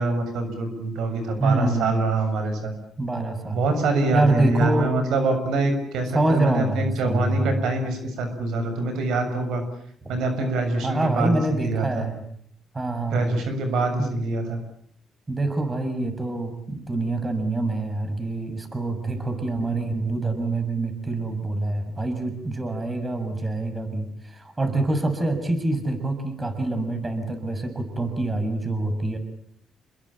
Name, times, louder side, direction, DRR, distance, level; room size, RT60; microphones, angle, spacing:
voice 1, 0.0-2.7 3.5-9.6 10.1-12.1 13.1-14.6, right 3 dB, 85° right, 7 dB, 6.9 m, -25 dB
voice 2, 1.4-2.1 3.0-3.6 4.1-4.9 6.1-7.6 10.0-10.1 10.8-12.2 12.7-13.5 14.0-14.1 15.3-29.2, right 2 dB, 25° right, 8 dB, 6.6 m, -26 dB
28.5 x 22.0 x 8.8 m, 0.65 s
cardioid pair, 90°, 0 cm